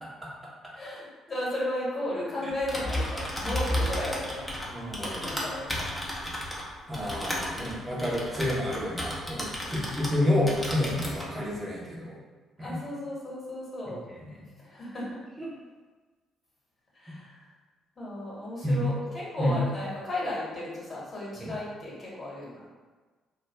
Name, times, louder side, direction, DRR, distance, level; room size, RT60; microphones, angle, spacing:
voice 1, 0.0-0.5 4.7-5.2 6.9-12.2 12.6-12.8 14.1-14.5 15.4-15.5 18.6-18.8 19.4-19.5 21.4-21.5, left 1 dB, 15° right, -6 dB, 0.9 m, -30 dB
voice 2, 0.7-4.5 5.0-6.0 9.6-10.3 12.6-14.0 14.6-15.2 16.9-17.5 18.0-22.6, left 1 dB, 35° left, -6 dB, 1.2 m, -35 dB
Typing, 2.5-10.2 10.5-11.3, left 1 dB, 10° left, 0.7 m, -33 dB
2.3 x 2.2 x 3.4 m, 1.3 s
figure-of-eight pair, 45°, 0 cm